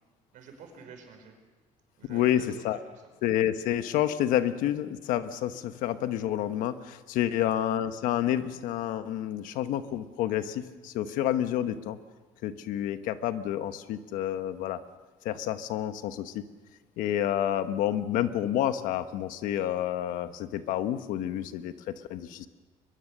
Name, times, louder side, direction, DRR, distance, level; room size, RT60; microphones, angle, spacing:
voice 1, 0.3-1.3 2.0-3.0 7.3-7.5, right 5 dB, 70° right, 4 dB, 5.3 m, -49 dB
voice 2, 2.1-2.8 3.2-12.0 12.4-14.8 15.2-16.4 17.0-21.7 22.1-22.5, left 11 dB, 85° left, 10 dB, 1.2 m, -29 dB
23.0 x 22.0 x 6.6 m, 1.3 s
cardioid pair, 120°, 14 cm